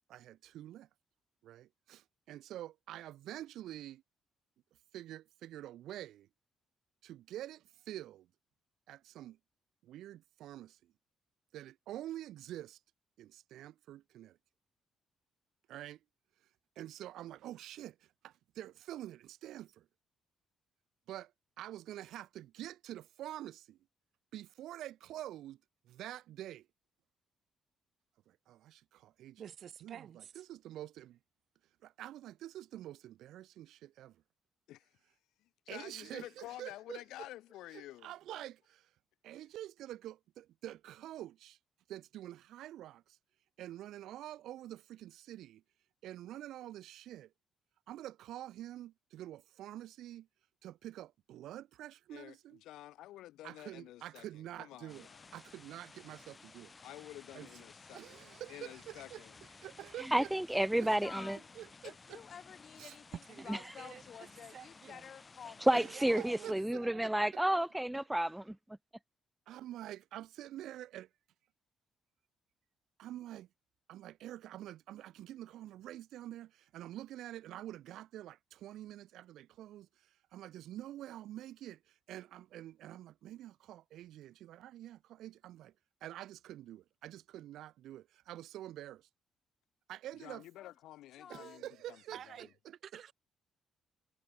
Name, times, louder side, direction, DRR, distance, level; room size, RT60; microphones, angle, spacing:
voice 1, 0.1-0.9 1.4-4.0 4.9-6.3 7.0-8.3 8.9-9.4 9.8-10.9 11.5-12.8 13.2-14.4 15.7-16.0 16.7-19.9 21.1-21.3 21.6-23.8 24.3-26.7 28.3-29.4 29.8-31.2 31.8-34.2 35.7-37.0 37.7-38.9 39.2-41.6 41.9-43.2 43.6-45.6 46.0-47.3 47.9-50.3 50.6-52.6 53.4-56.7 57.3-57.5 57.9-60.3 60.8-61.0 61.5-62.2 62.8-63.0 65.7-67.1 69.5-71.1 73.0-73.5 73.9-85.7 86.0-89.1 89.9-90.4 91.3-92.7, right 13 dB, 80° right, 1.3 m, -47 dB
voice 2, 29.4-30.4 63.1-65.2 65.8-67.1 92.1-92.5 92.8-93.1, right 9 dB, 60° right, 2.1 m, -50 dB
voice 3, 35.7-38.1 52.1-52.3 52.6-54.3 54.6-55.3 56.8-59.4 90.2-92.0 92.3-92.5, left 15 dB, 90° left, 3.2 m, -50 dB
sound 1, 54.9-66.5, left 4 dB, 30° left, 5.4 m, -56 dB
voice 4, 60.0-61.4 63.5-63.6 65.6-68.6, right 1 dB, 5° right, 0.6 m, -31 dB
voice 5, 61.0-61.4 61.8-63.2 63.4-65.7 90.6-90.7 91.2-91.6, left 8 dB, 55° left, 4.4 m, -50 dB
cardioid pair, 90°, 0 cm